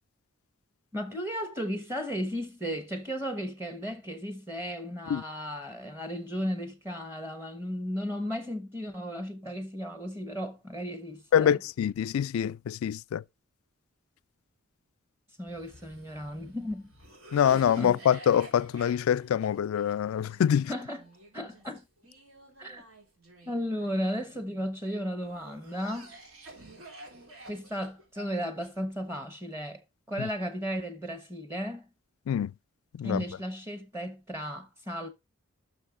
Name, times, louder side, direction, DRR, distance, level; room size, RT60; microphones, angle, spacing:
voice 1, 0.9-11.5 15.4-16.9 17.8-17.9 20.7-21.0 21.3-21.8 22.6-22.8 23.5-26.1 27.5-29.8 30.1-31.9 33.0-35.1, equal, 10° right, 1.1 m, -35 dB
voice 2, 11.3-13.2 17.3-20.7 30.2-30.3 32.3-32.5 32.9-33.2, left 9 dB, 80° left, 0.3 m, -25 dB
Cough, 15.4-24.6 25.2-29.2, right 1 dB, 85° right, 3.2 m, -51 dB
6.4 x 5.4 x 4.9 m
head